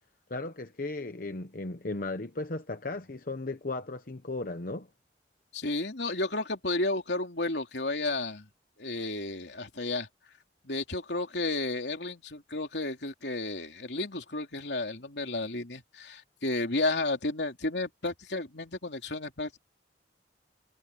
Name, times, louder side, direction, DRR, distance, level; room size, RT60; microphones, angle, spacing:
voice 1, 0.3-4.9, left 2 dB, 50° left, 1.0 m, -36 dB
voice 2, 5.5-8.4 8.8-10.1 10.6-19.6, left 2 dB, 75° left, 3.2 m, -32 dB
head